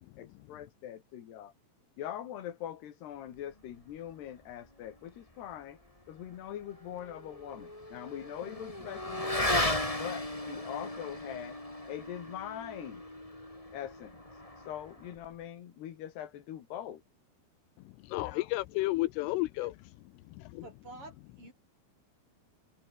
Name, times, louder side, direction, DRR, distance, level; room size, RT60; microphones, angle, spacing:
voice 1, 0.2-1.5 2.0-5.8 6.1-9.6 10.0-11.6 11.9-13.0 13.7-17.0 18.2-18.5, left 11 dB, 60° left, 3.8 m, -42 dB
Motorcycle / Accelerating revving vroom, 6.5-15.3, left 1 dB, 10° left, 3.0 m, -36 dB
voice 2, 17.8-19.8 20.3-20.7, left 19 dB, 80° left, 3.2 m, -33 dB
voice 3, 20.6-21.5, right 2 dB, 25° right, 6.2 m, -49 dB
omnidirectional pair, 5.9 m